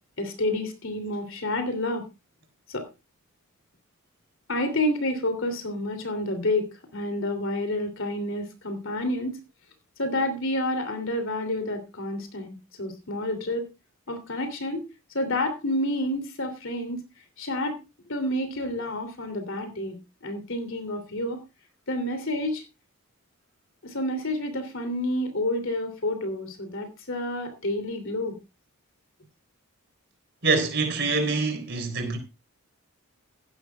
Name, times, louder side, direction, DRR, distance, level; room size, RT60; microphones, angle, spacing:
voice 1, 0.2-2.1 2.7-2.9 4.5-9.4 10.0-13.7 14.1-14.8 15.1-17.0 17.4-17.8 18.1-21.4 21.9-22.6 23.8-28.4, left 1 dB, 60° left, 3.0 m, -29 dB
voice 2, 30.4-32.2, right 3 dB, 50° right, 3.8 m, -25 dB
16.5 x 12.0 x 2.4 m
head